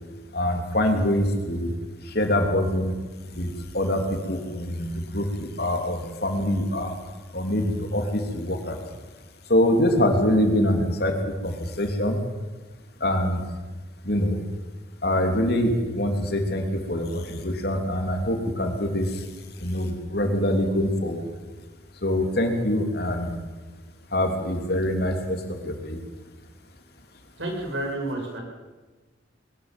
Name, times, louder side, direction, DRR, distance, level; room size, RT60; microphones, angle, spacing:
voice 1, 0.3-1.7 2.1-2.9 3.4-4.9 5.1-6.9 7.3-8.8 9.5-12.2 13.0-13.4 14.0-14.4 15.0-19.1 19.6-21.3 22.0-23.4 24.1-26.0, left 1 dB, 55° left, 4 dB, 3.1 m, -24 dB
voice 2, 27.4-28.4, right 1 dB, 80° right, 2 dB, 6.3 m, -30 dB
21.5 x 13.5 x 9.1 m, 1.3 s
head